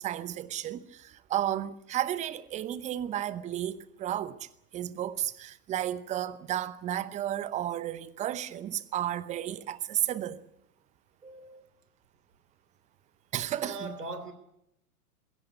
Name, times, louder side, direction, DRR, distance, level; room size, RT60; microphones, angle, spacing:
voice 1, 0.0-10.4 13.3-13.9, right 12 dB, 15° right, 0.8 m, -33 dB
voice 2, 11.2-11.7 13.6-14.3, right 2 dB, 85° right, 3.4 m, -40 dB
21.0 x 17.0 x 8.3 m
figure-of-eight pair, 110°, 45 cm